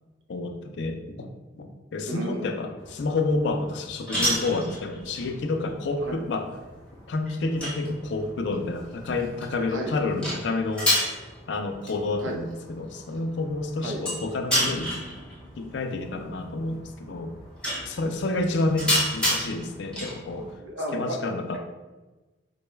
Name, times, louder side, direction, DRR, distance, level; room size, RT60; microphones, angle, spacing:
voice 1, 0.3-6.5 7.1-10.9 11.5-15.0 15.6-17.3 17.9-20.5 20.9-21.6, left 2 dB, 60° left, 5 dB, 0.4 m, -29 dB
voice 2, 2.1-2.6 6.0-6.2 9.7-9.9 12.2-12.4 13.8-14.0 20.6-21.2, right 1 dB, 80° right, 1 dB, 0.6 m, -33 dB
sound 1, 2.8-20.5, equal, 5° left, 0.8 m, -32 dB
3.9 x 2.2 x 3.1 m, 1.2 s
head